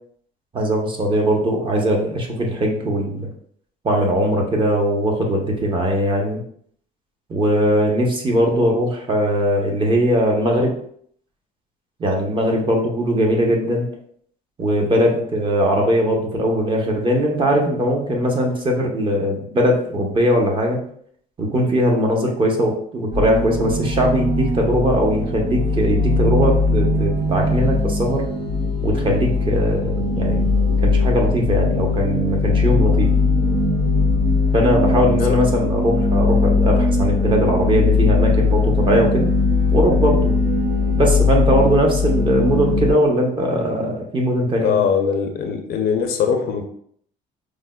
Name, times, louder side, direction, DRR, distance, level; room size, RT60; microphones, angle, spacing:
voice 1, 0.5-3.3 3.8-6.4 7.3-10.7 12.0-13.9 14.6-20.8 21.4-28.2 28.8-33.1 34.5-39.3 39.7-40.3 40.9-44.8, equal, 30° right, 0 dB, 0.7 m, -20 dB
sound 1, 23.1-42.9, left 3 dB, 75° right, 0.7 m, -19 dB
voice 2, 44.6-46.6, left 6 dB, 70° left, 5 dB, 0.5 m, -21 dB
4.8 x 2.0 x 2.2 m, 0.63 s
cardioid pair, 110°, 17 cm